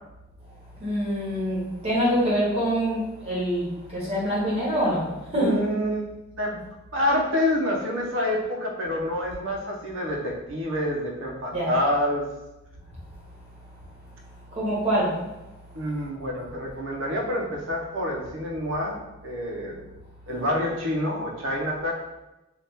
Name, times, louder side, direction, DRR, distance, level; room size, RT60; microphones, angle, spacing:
voice 1, 0.8-5.6 11.5-11.7 14.5-15.2, equal, 30° right, -7 dB, 0.9 m, -25 dB
voice 2, 5.3-6.0 6.4-6.6 6.9-12.2 15.7-19.0 19.2-19.8 20.3-21.9, left 1 dB, 80° right, -1 dB, 0.7 m, -27 dB
3.4 x 2.4 x 2.8 m, 0.98 s
head